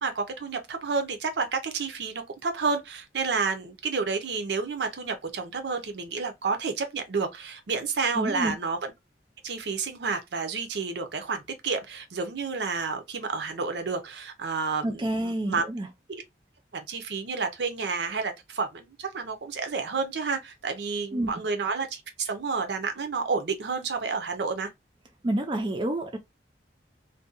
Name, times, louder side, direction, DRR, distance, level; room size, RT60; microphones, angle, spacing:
voice 1, 0.0-8.8 9.4-15.6 16.1-16.2 16.7-24.7, right 4 dB, 70° right, 0.6 m, -30 dB
voice 2, 8.2-8.5 14.8-15.9 21.1-21.3 25.2-26.2, right 1 dB, 25° right, 0.3 m, -28 dB
2.6 x 2.1 x 2.3 m
head